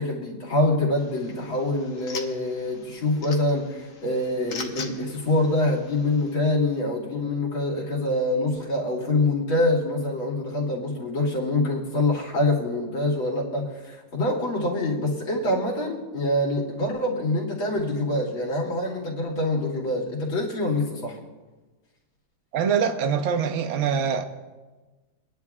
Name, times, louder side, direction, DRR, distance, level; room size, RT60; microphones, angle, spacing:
voice 1, 0.0-21.2, left 2 dB, 75° left, 3.0 m, -25 dB
sound 1, 1.0-6.4, left 5 dB, 50° left, 1.1 m, -42 dB
voice 2, 22.5-24.2, right 7 dB, 60° right, 0.8 m, -24 dB
26.0 x 10.5 x 2.4 m
omnidirectional pair, 2.2 m